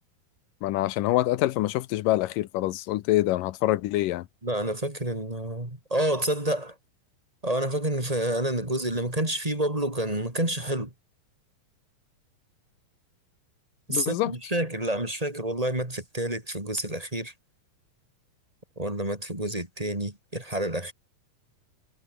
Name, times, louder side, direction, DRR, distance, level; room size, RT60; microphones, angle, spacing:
voice 1, 0.6-4.3 13.9-14.3, left 16 dB, 80° left, 2.4 m, -25 dB
voice 2, 4.4-6.7 7.4-10.9 13.9-17.3 18.8-20.9, right 1 dB, 10° right, 3.8 m, -28 dB
omnidirectional pair, 3.9 m